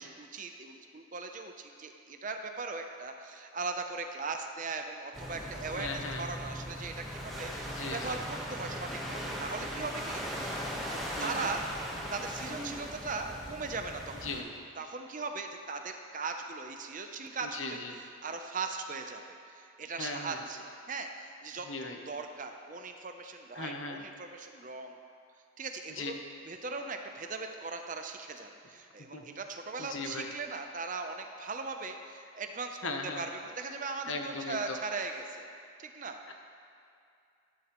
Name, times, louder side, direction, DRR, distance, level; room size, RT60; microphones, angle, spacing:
voice 1, 0.0-11.6 12.1-14.4 14.8-17.8 18.2-21.7 22.1-25.0 25.6-26.2 26.5-32.8 33.2-35.5 35.8-36.2, right 4 dB, 40° right, 5 dB, 0.6 m, -39 dB
sound 1, 5.1-14.4, equal, ahead, 1.3 m, -39 dB
voice 2, 5.8-6.2 7.7-8.2 11.2-11.5 14.2-14.5 17.4-17.9 20.0-20.4 21.7-22.0 23.5-24.0 25.9-26.2 29.1-29.2 29.8-30.3 32.8-33.3 34.1-34.8 36.3-36.4, left 3 dB, 75° left, 3 dB, 1.0 m, -38 dB
12.5 x 11.5 x 3.1 m, 2.5 s
head